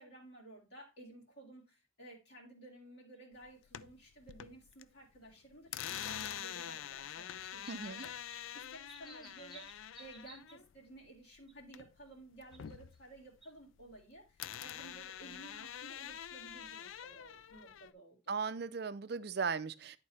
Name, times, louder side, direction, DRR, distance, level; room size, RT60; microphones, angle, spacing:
voice 1, 0.0-18.4, right 1 dB, 55° left, 2.2 m, -55 dB
sound 1, 3.2-3.3 4.7-4.8 5.9-6.0 6.3-6.4 7.0-10.5 11.5-11.8 12.4-13.0 13.4-13.5, right 2 dB, ahead, 1.4 m, -57 dB
sound 2, 3.4-4.8 5.1-12.1 12.4-14.0 14.4-17.9, left 10 dB, 80° left, 0.4 m, -46 dB
voice 2, 7.7-8.0 18.3-20.0, right 5 dB, 55° right, 0.5 m, -37 dB
10.5 x 3.7 x 4.2 m
head